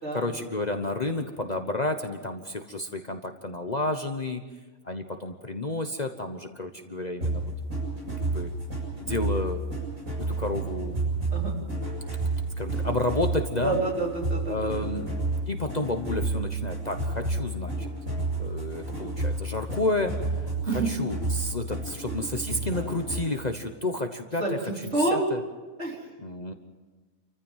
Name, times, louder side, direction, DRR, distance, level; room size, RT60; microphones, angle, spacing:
voice 1, 0.1-4.4 4.8-7.5 8.0-8.5 9.0-9.6 10.2-11.0 11.7-11.8 12.6-13.8 14.5-15.1 15.5-17.9 18.4-25.4 26.2-26.5, left 2 dB, 35° left, 6 dB, 1.1 m, -31 dB
sound 1, 7.2-23.4, right 2 dB, 80° right, 7.7 m, -31 dB
voice 2, 13.6-15.0 20.7-20.9 24.4-25.2 25.8-26.1, right 2 dB, 55° right, -1 dB, 4.1 m, -28 dB
28.5 x 15.0 x 7.4 m, 1.3 s
omnidirectional pair, 1.4 m